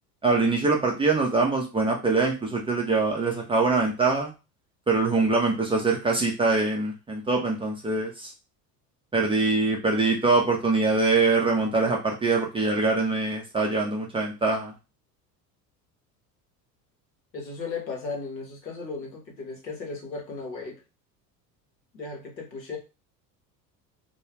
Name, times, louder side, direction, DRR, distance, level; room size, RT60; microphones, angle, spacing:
voice 1, 0.2-4.3 4.9-8.3 9.1-14.7, right 3 dB, 10° right, -1 dB, 0.4 m, -23 dB
voice 2, 17.3-20.8 21.9-22.8, left 4 dB, 90° left, 1 dB, 0.8 m, -36 dB
2.3 x 2.2 x 3.1 m, 0.29 s
figure-of-eight pair, 70°, 49 cm